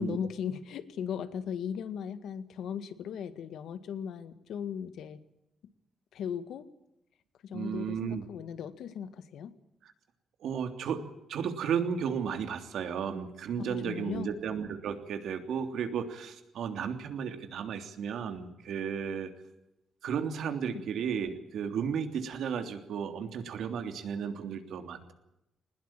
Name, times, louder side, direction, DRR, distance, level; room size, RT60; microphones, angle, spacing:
voice 1, 0.0-5.2 6.1-6.7 7.4-9.6 13.7-14.3, left 8 dB, 80° left, 12 dB, 1.8 m, -37 dB
voice 2, 7.5-8.2 9.8-9.9 10.4-19.3 20.0-25.1, right 7 dB, 75° right, 7 dB, 3.2 m, -34 dB
21.5 x 20.5 x 9.0 m, 0.87 s
cardioid pair, 155°, 0 cm